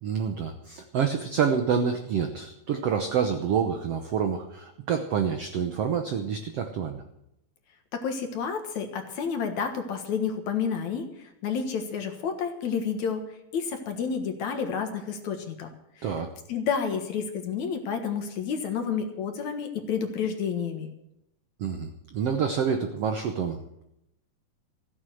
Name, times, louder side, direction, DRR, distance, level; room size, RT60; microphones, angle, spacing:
voice 1, 0.0-7.0 16.0-16.3 21.6-23.8, right 7 dB, 85° right, 6 dB, 1.3 m, -28 dB
voice 2, 7.9-13.2 13.5-15.7 16.0-16.1 16.5-20.9, left 6 dB, 60° left, 6 dB, 2.5 m, -30 dB
15.0 x 9.5 x 7.8 m, 0.81 s
omnidirectional pair, 4.2 m